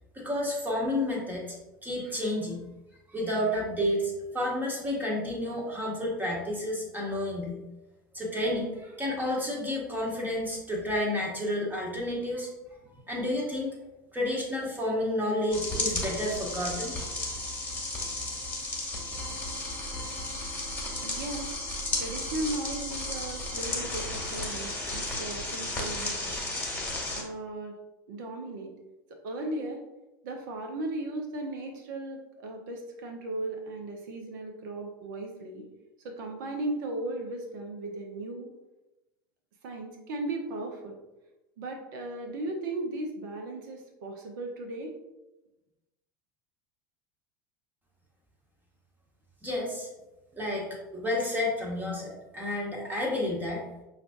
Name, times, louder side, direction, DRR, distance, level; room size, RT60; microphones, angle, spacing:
voice 1, 0.1-1.6 1.8-2.6 3.1-7.6 8.1-12.5 13.1-13.8 14.1-16.9 49.4-49.9 50.3-53.7, left 1 dB, 15° right, -2 dB, 1.1 m, -30 dB
sound 1, 15.5-27.2, left 2 dB, 15° left, 1.3 m, -34 dB
voice 2, 21.0-21.5 22.0-26.3 27.1-27.8 28.1-28.7 29.2-29.8 30.2-35.7 36.0-38.5 39.6-40.9 41.6-44.9, right 2 dB, 65° right, 2 dB, 0.8 m, -36 dB
5.7 x 2.5 x 2.5 m, 1.0 s
hypercardioid pair, 80°, 11 cm